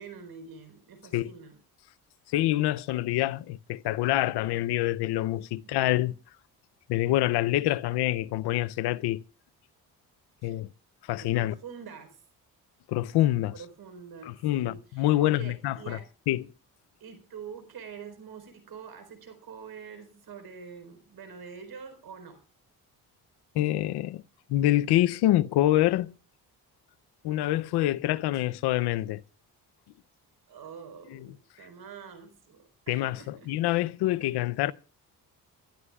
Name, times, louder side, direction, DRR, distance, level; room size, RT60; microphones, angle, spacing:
voice 1, 0.0-1.6 5.6-6.1 10.4-10.6 11.2-12.2 13.5-16.1 17.0-22.4 30.5-33.5, right 6 dB, 70° right, 4.3 m, -46 dB
voice 2, 2.3-6.1 6.9-9.2 10.4-10.7 11.1-11.5 12.9-13.5 14.3-16.0 16.3-16.4 23.5-24.2 24.5-26.1 27.2-29.2 31.1-31.3 32.9-34.7, left 15 dB, 90° left, 0.7 m, -26 dB
30.0 x 13.0 x 2.3 m
cardioid pair, 70°, 38 cm